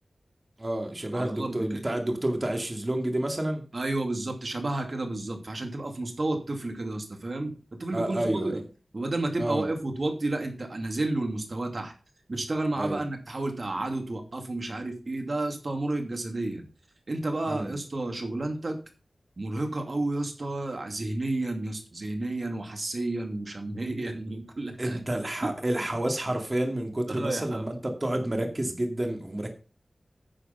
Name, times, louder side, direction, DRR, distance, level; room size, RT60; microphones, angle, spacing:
voice 1, 0.6-3.6 7.9-8.5 9.4-9.6 12.8-13.0 17.5-17.7 24.8-29.5, right 1 dB, 30° right, 3 dB, 2.2 m, -29 dB
voice 2, 1.1-1.8 3.7-7.5 7.8-8.6 8.9-11.9 12.3-16.7 17.1-18.8 19.4-25.0 25.4-25.5 27.1-27.7, right 2 dB, 55° right, 4 dB, 2.6 m, -31 dB
10.5 x 6.7 x 5.5 m, 0.36 s
wide cardioid pair, 55°, 0 cm